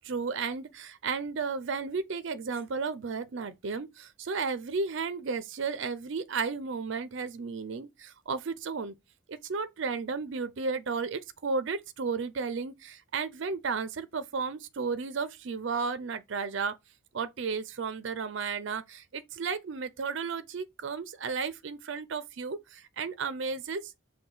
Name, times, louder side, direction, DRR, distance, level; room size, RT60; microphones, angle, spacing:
voice 1, 0.0-8.9 9.3-16.7 17.1-23.9, right 5 dB, 60° right, 0.4 m, -33 dB
5.7 x 2.2 x 3.8 m
head